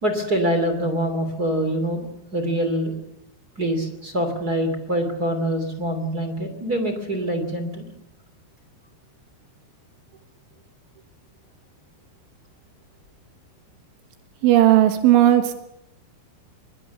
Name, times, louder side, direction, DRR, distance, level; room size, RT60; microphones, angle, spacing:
voice 1, 0.0-2.1 2.3-2.9 3.6-7.8, right 1 dB, 25° right, 8 dB, 2.4 m, -24 dB
voice 2, 14.4-15.5, right 13 dB, 85° right, 8 dB, 3.8 m, -15 dB
25.0 x 21.5 x 7.1 m, 0.80 s
omnidirectional pair, 5.4 m